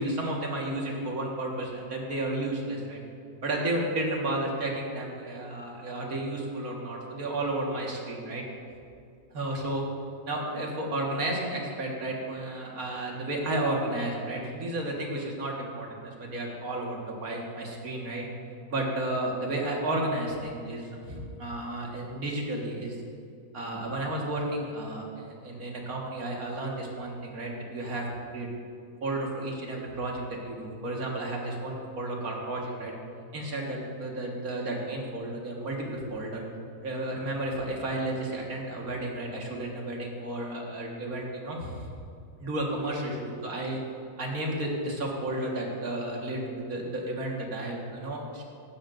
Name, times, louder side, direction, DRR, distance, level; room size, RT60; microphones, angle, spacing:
voice 1, 0.0-3.0 3.4-8.4 9.3-9.8 10.3-18.3 18.7-23.0 23.5-28.1 28.3-28.5 29.0-32.9 33.3-36.5 36.8-41.9 42.4-43.8 44.2-48.4, right 1 dB, 85° right, -1 dB, 2.1 m, -32 dB
15.0 x 11.5 x 2.6 m, 2.4 s
omnidirectional pair, 1.5 m